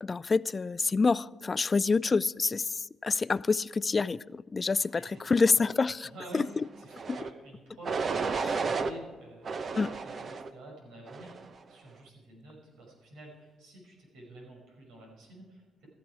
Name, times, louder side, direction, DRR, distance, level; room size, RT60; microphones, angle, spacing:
voice 1, 0.0-2.7 3.0-4.9 5.3-6.4 7.1-7.2 8.4-8.5 9.8-9.9, left 4 dB, 30° left, 20 dB, 0.3 m, -27 dB
voice 2, 4.9-5.6 6.0-6.4 6.8-15.9, right 1 dB, 85° right, -1 dB, 5.4 m, -49 dB
sound 1, 6.9-7.3 7.8-8.9 9.4-10.5 11.1-11.5, right 4 dB, 45° right, 0.9 m, -32 dB
15.5 x 13.5 x 4.8 m, 1.5 s
cardioid pair, 90°, 0 cm